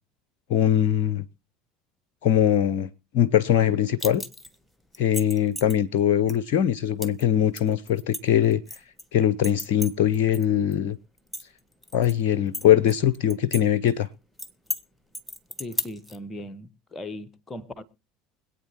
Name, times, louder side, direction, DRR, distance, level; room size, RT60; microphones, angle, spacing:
voice 1, 0.5-1.2 2.2-4.2 5.0-8.6 9.1-11.0 11.9-14.1, left 10 dB, 55° left, 0.6 m, -22 dB
sound 1, 4.0-4.5 4.9-5.8 6.3-6.4 7.0-7.2 7.6-9.0 9.4-10.4 10.7-10.8 11.2-12.1 12.5-13.6 13.9-14.0 14.4-14.8 15.1-16.2, left 1 dB, ahead, 1.3 m, -34 dB
voice 2, 15.6-17.8, left 1 dB, 20° left, 1.2 m, -38 dB
25.0 x 8.9 x 3.0 m
figure-of-eight pair, 70°, 0 cm